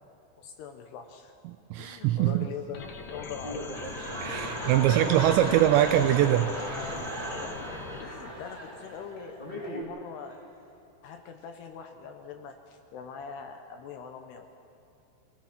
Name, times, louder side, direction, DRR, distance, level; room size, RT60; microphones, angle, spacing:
voice 1, 0.4-1.4 1.8-3.7 4.4-5.8 7.4-10.4 11.0-14.5, left 6 dB, 75° left, 5 dB, 2.6 m, -42 dB
voice 2, 1.5-2.5 4.2-6.9, right 12 dB, 80° right, 8 dB, 2.6 m, -23 dB
sound 1, 2.2-9.8, equal, 20° left, 1.2 m, -43 dB
sound 2, 2.7-8.0, left 5 dB, 55° left, 2.6 m, -41 dB
sound 3, 3.3-9.6 10.3-10.4, equal, 15° right, 5.3 m, -37 dB
26.5 x 17.0 x 5.9 m, 2.9 s
omnidirectional pair, 5.6 m